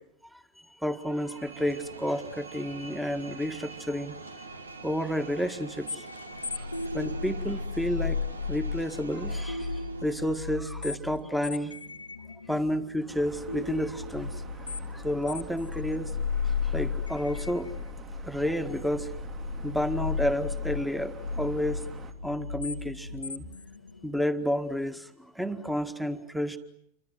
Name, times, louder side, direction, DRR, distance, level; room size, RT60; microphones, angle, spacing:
voice 1, 0.3-4.4 4.8-6.1 6.5-6.7 6.9-8.2 8.5-11.8 12.5-14.4 14.9-16.1 16.6-17.7 18.2-19.1 19.6-21.8 22.2-23.5 24.0-26.6, equal, ahead, 10 dB, 1.9 m, -31 dB
sound 1, 1.0-10.8, right 3 dB, 75° right, 1.9 m, -45 dB
sound 2, 5.9-24.2, left 4 dB, 80° left, 1.3 m, -35 dB
sound 3, 13.1-22.1, right 6 dB, 30° right, 2.7 m, -46 dB
29.0 x 25.0 x 8.1 m, 0.70 s
figure-of-eight pair, 90°, 0 cm